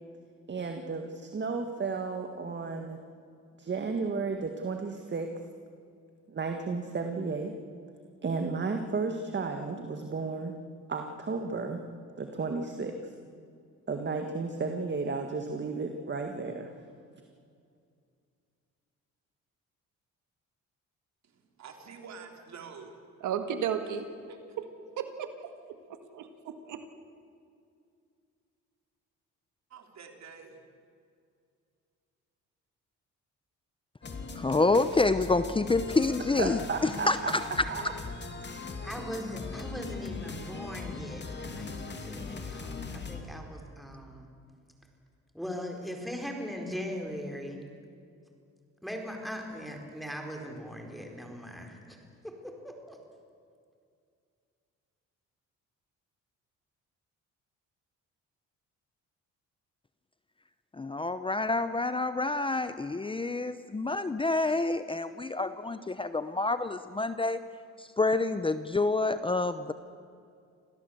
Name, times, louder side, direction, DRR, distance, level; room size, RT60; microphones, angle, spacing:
voice 1, 0.5-3.0 3.6-5.3 6.3-7.6 8.2-10.5 10.9-11.8 12.2-13.0 13.9-16.7 36.4-37.3 37.7-37.9, right 4 dB, 35° right, 5 dB, 1.8 m, -33 dB
voice 2, 21.2-23.0 24.3-24.4 29.7-30.6, right 5 dB, 65° right, 4 dB, 3.6 m, -47 dB
voice 3, 23.2-24.1 25.0-25.3 25.9-26.8, right 8 dB, 80° right, 7 dB, 1.9 m, -33 dB
sound 1, 34.0-43.2, left 4 dB, 35° left, 2.7 m, -40 dB
voice 4, 34.4-37.2 60.7-67.4 67.8-69.7, left 3 dB, 15° left, 12 dB, 0.8 m, -28 dB
voice 5, 38.8-44.3 45.3-47.6 48.8-52.0 52.2-53.0, equal, ahead, 2 dB, 4.5 m, -40 dB
26.0 x 17.0 x 8.0 m, 2.3 s
cardioid pair, 90°, 30 cm